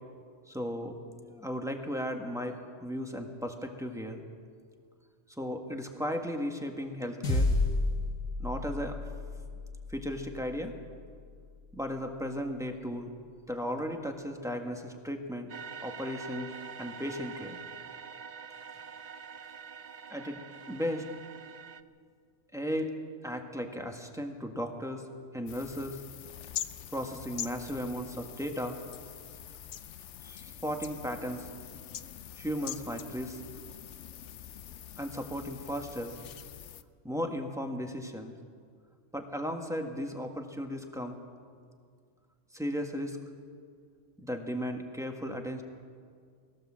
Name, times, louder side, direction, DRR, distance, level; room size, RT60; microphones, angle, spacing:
voice 1, 0.5-4.2 5.4-7.5 8.4-9.0 9.9-10.7 11.7-13.1 13.5-15.5 15.8-16.5 16.8-17.6 20.1-20.4 20.7-21.1 22.5-23.0 23.2-25.0 25.3-26.0 26.9-28.8 30.2-31.5 32.4-33.4 35.0-36.2 37.0-38.3 39.1-41.2 42.5-43.2 44.2-45.6, equal, 5° right, 3 dB, 1.5 m, -35 dB
sound 1, 7.2-11.8, left 2 dB, 90° left, 2.2 m, -32 dB
sound 2, 15.5-21.8, right 6 dB, 45° right, 0.6 m, -45 dB
sound 3, 25.5-36.8, left 10 dB, 70° left, 1.0 m, -44 dB
20.5 x 17.0 x 7.6 m, 2.1 s
omnidirectional pair, 1.3 m